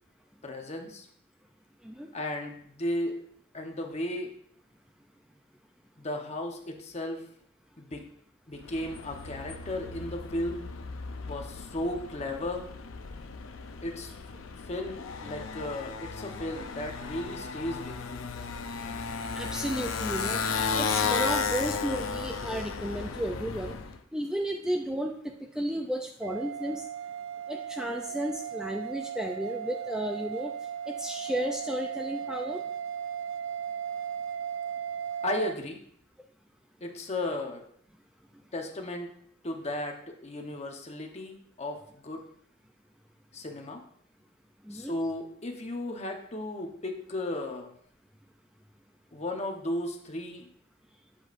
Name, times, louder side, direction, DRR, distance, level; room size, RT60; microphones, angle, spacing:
voice 1, 0.4-1.1 2.1-3.2 3.5-4.3 6.0-7.2 7.8-8.1 8.5-10.6 11.3-12.7 13.8-14.1 14.7-18.3 35.2-35.8 36.8-37.6 38.5-39.1 39.4-42.3 43.3-43.8 44.7-47.7 49.1-50.5, left 1 dB, 35° left, 3 dB, 1.0 m, -35 dB
Motorcycle, 8.6-24.0, left 5 dB, 90° left, 0.6 m, -34 dB
voice 2, 19.3-20.4 20.8-23.7 24.1-25.2 25.6-26.9 27.5-30.5 30.9-32.6 44.7-44.9, equal, 5° right, 2 dB, 0.4 m, -33 dB
sound 1, 26.2-35.5, right 8 dB, 70° right, 0.3 m, -36 dB
8.2 x 7.9 x 2.6 m, 0.64 s
head